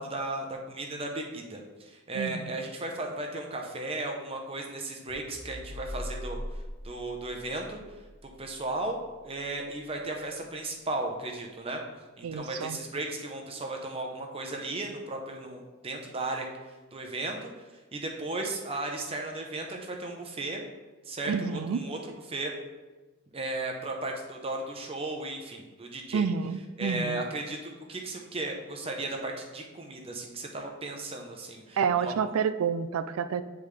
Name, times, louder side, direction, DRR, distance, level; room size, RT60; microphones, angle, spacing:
voice 1, 0.0-6.4 6.8-7.8 8.2-11.8 12.2-16.4 16.9-17.5 17.9-20.6 21.0-22.0 22.3-22.5 23.3-26.3 26.8-32.1, right 2 dB, 25° right, 2 dB, 0.7 m, -35 dB
voice 2, 2.1-2.6 12.2-12.8 21.3-21.8 26.1-27.2 31.8-33.4, right 6 dB, 80° right, 13 dB, 0.4 m, -29 dB
sound 1, 5.1-9.6, equal, 10° right, 1.0 m, -42 dB
9.4 x 3.5 x 3.2 m, 1.2 s
head